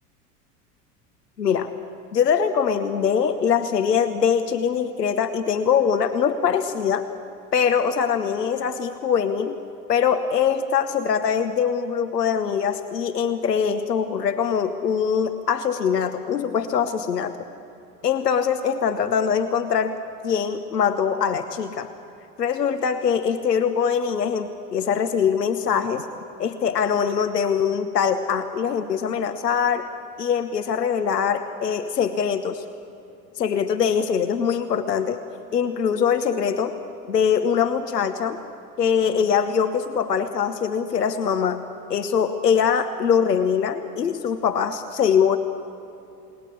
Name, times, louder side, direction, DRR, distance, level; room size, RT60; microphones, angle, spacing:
voice 1, 1.4-1.7 2.1-7.1 7.5-9.6 9.9-17.4 18.0-20.0 20.2-21.9 22.4-26.1 26.4-29.9 30.2-32.6 33.3-35.2 35.5-36.7 37.1-38.4 38.8-41.6 41.9-45.4, left 7 dB, 75° left, 8 dB, 1.1 m, -22 dB
29.5 x 19.0 x 8.5 m, 2.9 s
figure-of-eight pair, 80°, 49 cm